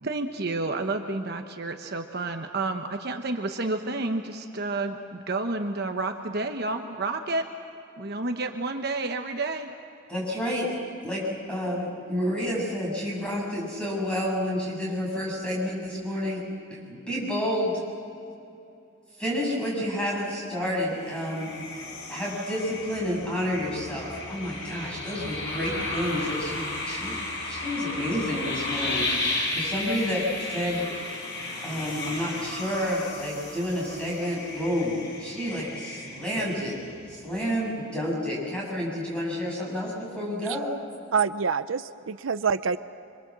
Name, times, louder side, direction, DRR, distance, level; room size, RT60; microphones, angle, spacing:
voice 1, 0.0-7.5 8.0-9.8, right 2 dB, 50° right, 5 dB, 1.1 m, -30 dB
voice 2, 10.1-10.7 11.0-16.4 16.9-17.8 19.2-21.7 22.1-27.2 27.4-30.9 31.6-36.8 37.1-40.7, equal, 5° left, -4 dB, 7.3 m, -30 dB
sound 1, 20.8-37.1, left 2 dB, 55° left, 6.0 m, -34 dB
voice 3, 41.1-42.8, right 6 dB, 80° right, 13 dB, 0.6 m, -26 dB
25.5 x 25.0 x 7.6 m, 2.7 s
head